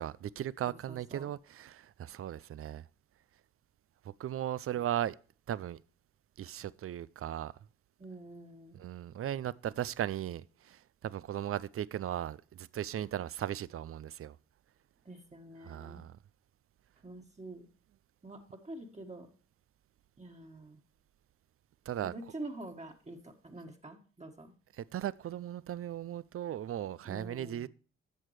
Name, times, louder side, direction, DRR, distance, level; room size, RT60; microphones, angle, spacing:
voice 1, 0.0-2.8 4.0-5.2 5.5-5.8 6.4-7.5 8.7-14.4 15.6-16.1 21.9-22.1 24.8-27.7, right 11 dB, 50° right, 0.5 m, -37 dB
voice 2, 0.7-1.3 4.7-4.8 8.0-8.8 15.0-16.0 17.0-17.7 18.2-19.3 20.2-20.8 22.0-24.5 27.0-27.7, right 2 dB, 25° right, 1.6 m, -46 dB
10.5 x 7.4 x 3.2 m
hypercardioid pair, 40°, 30 cm